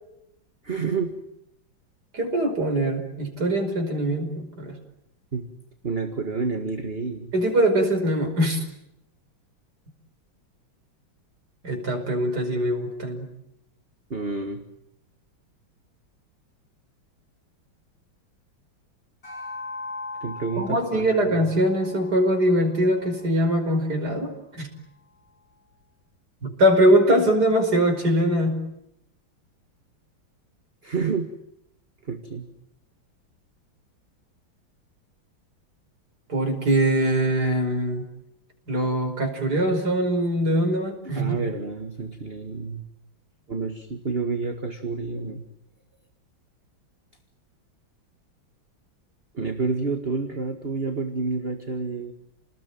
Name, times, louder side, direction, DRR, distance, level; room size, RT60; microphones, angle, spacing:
voice 1, 0.6-1.1 5.3-5.5 5.8-7.3 14.1-14.6 20.2-21.3 30.8-31.3 32.0-32.5 41.0-42.9 43.5-45.4 49.3-52.1, right 4 dB, 30° right, 5 dB, 2.0 m, -29 dB
voice 2, 2.1-4.8 7.3-8.6 11.6-13.3 20.6-24.7 26.4-28.6 36.3-38.1 38.7-41.3, right 1 dB, 50° right, 3 dB, 5.8 m, -22 dB
sound 1, 19.2-23.8, left 3 dB, 40° left, 8.7 m, -40 dB
30.0 x 20.0 x 9.2 m, 0.79 s
omnidirectional pair, 2.3 m